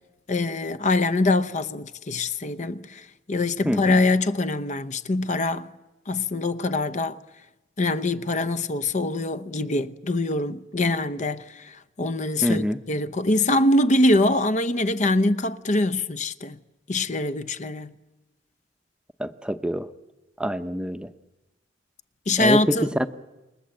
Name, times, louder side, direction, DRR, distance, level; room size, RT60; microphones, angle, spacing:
voice 1, 0.3-5.7 6.1-7.2 7.8-16.6 16.9-17.9 22.3-22.9, left 2 dB, 40° left, 0.8 m, -24 dB
voice 2, 12.4-12.8 19.2-19.9 20.4-21.1 22.4-23.1, equal, 5° right, 0.8 m, -25 dB
28.5 x 21.5 x 7.8 m
head